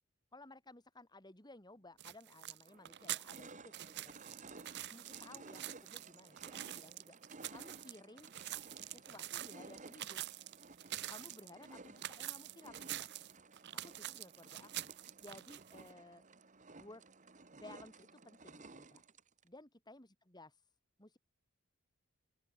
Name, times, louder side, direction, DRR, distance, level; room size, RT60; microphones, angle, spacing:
voice 1, 0.3-4.1 4.9-7.2 7.5-8.3 8.9-10.2 11.1-13.1 13.8-14.7 15.0-16.2 16.8-17.0 17.5-19.0 19.4-20.7 21.0-21.2, left 2 dB, 20° left, 3.1 m, -57 dB
sound 1, 2.0-2.1 2.7-19.5, right 3 dB, 35° right, 1.6 m, -56 dB
sound 2, 2.0-15.9, right 14 dB, 50° right, 0.6 m, -46 dB
open air
head